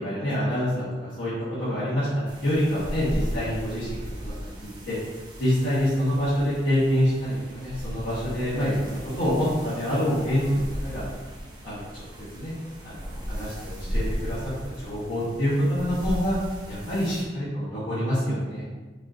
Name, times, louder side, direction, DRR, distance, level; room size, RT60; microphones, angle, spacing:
voice 1, 0.0-1.3 1.6-2.1 2.4-5.0 5.4-11.0 11.6-12.0 12.3-12.5 12.8-16.4 16.7-18.6, equal, 85° left, -11 dB, 1.3 m, -26 dB
sound 1, 2.3-17.2, equal, 25° right, 0.5 m, -36 dB
5.5 x 2.5 x 2.7 m, 1.3 s
head